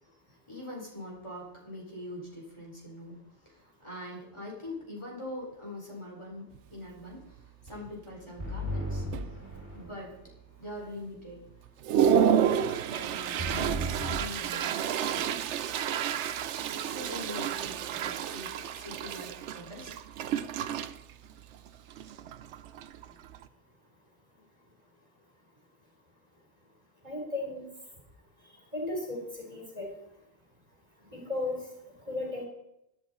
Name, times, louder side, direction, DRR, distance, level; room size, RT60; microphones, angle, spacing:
voice 1, 0.5-9.1 9.7-10.2 10.6-11.4 11.9-15.5 16.6-19.9 20.7-20.9, left 1 dB, 25° left, -3 dB, 4.2 m, -43 dB
Toilet flush, 6.5-6.6 7.1-7.4 7.7-8.2 8.7-8.8 9.1-9.9 10.3-10.4 11.0-11.1 11.5-23.5, right 9 dB, 75° right, 0.9 m, -30 dB
sound 1, 8.4-10.1 13.4-14.3, equal, 15° right, 5.7 m, -35 dB
voice 2, 27.0-27.6 28.7-29.9 31.1-31.6 32.1-32.4, left 2 dB, 35° right, 0 dB, 3.8 m, -35 dB
17.5 x 11.0 x 4.1 m, 0.87 s
omnidirectional pair, 1.2 m